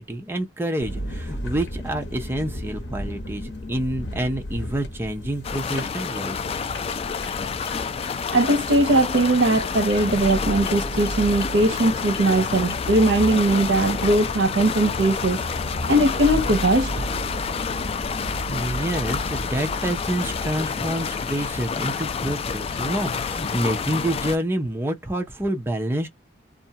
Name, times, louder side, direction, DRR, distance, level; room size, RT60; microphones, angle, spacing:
voice 1, 0.0-6.4 18.5-26.1, right 1 dB, 15° right, 0.6 m, -28 dB
sound 1, 0.8-20.6, equal, 80° left, 0.9 m, -34 dB
sound 2, 5.4-24.4, left 6 dB, 35° left, 0.3 m, -29 dB
voice 2, 8.3-15.4 15.9-16.9, right 2 dB, 80° right, 0.6 m, -20 dB
2.6 x 2.2 x 2.7 m
head